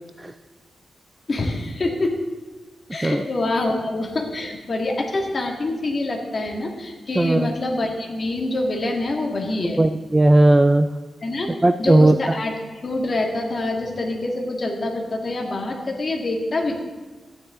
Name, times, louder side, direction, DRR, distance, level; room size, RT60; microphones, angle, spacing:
voice 1, 1.3-2.2 2.9-9.8 11.2-11.5 11.8-12.5 12.8-16.7, left 2 dB, 40° left, 1 dB, 1.8 m, -25 dB
voice 2, 7.2-7.5 9.8-10.9 11.6-12.2, right 2 dB, 15° right, 10 dB, 0.3 m, -16 dB
14.0 x 10.0 x 3.7 m, 1.3 s
wide cardioid pair, 125°, 0 cm